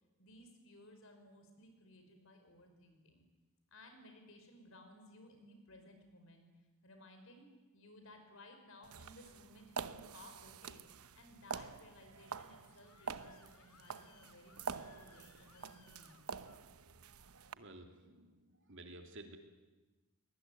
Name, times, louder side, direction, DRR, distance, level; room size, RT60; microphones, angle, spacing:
voice 1, 0.2-3.2 3.7-6.5 6.8-16.2, left 1 dB, 60° left, 5 dB, 5.4 m, -59 dB
sound 1, 8.8-17.5, right 5 dB, 75° right, 0.9 m, -47 dB
Screaming, 12.1-16.7, left 6 dB, 85° left, 2.5 m, -66 dB
voice 2, 17.5-19.4, right 1 dB, 55° right, 5 dB, 2.9 m, -53 dB
23.0 x 20.0 x 9.3 m, 1.2 s
head